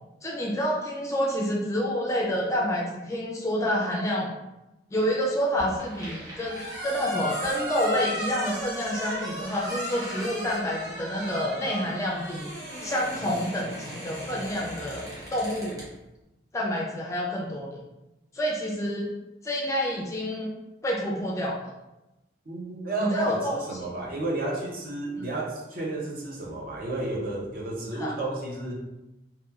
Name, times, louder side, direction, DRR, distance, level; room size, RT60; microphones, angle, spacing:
voice 1, 0.2-4.3 4.9-12.5 12.8-15.8 16.5-17.8 18.3-19.1 19.4-20.5 20.8-21.6 23.0-23.9 25.2-25.3 28.0-28.1, equal, 15° left, -3 dB, 0.4 m, -28 dB
sound 1, 5.6-15.9, right 1 dB, 20° right, 0.8 m, -36 dB
voice 2, 22.5-28.7, right 2 dB, 50° right, -2 dB, 0.6 m, -32 dB
2.9 x 2.2 x 2.3 m, 0.97 s
head